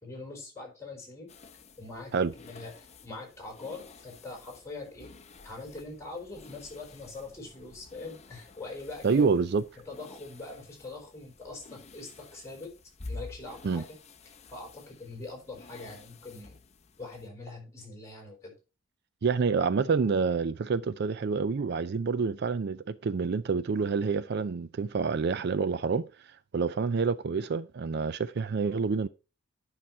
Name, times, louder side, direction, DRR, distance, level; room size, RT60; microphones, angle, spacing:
voice 1, 0.0-1.3 1.8-5.1 5.4-9.3 9.8-12.7 13.1-14.0 14.5-16.6 17.0-18.6, left 3 dB, 15° left, 4.5 m, -43 dB
sound 1, 1.3-17.3, left 3 dB, 35° left, 0.8 m, -50 dB
voice 2, 9.0-9.6 13.6-13.8 19.2-26.1 26.5-29.1, right 5 dB, 55° right, 0.4 m, -27 dB
10.0 x 5.8 x 4.6 m
head